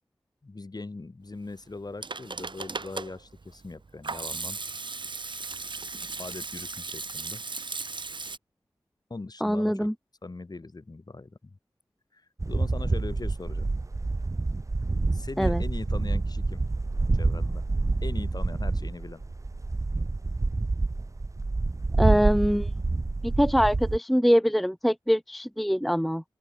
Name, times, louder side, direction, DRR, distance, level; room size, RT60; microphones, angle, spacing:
voice 1, 0.4-4.6 6.2-7.4 9.1-9.9 10.2-11.6 12.1-13.7 15.1-16.6 17.1-17.6 18.0-19.2, left 3 dB, 50° left, 4.2 m, -40 dB
Hands / Sink (filling or washing), 1.7-8.4, right 4 dB, 60° right, 3.1 m, -36 dB
voice 2, 9.4-9.9 15.4-15.6 22.0-22.7 23.2-26.2, equal, ahead, 0.5 m, -23 dB
sound 1, 12.4-24.0, right 3 dB, 35° right, 0.8 m, -27 dB
open air
cardioid pair, 45°, 9 cm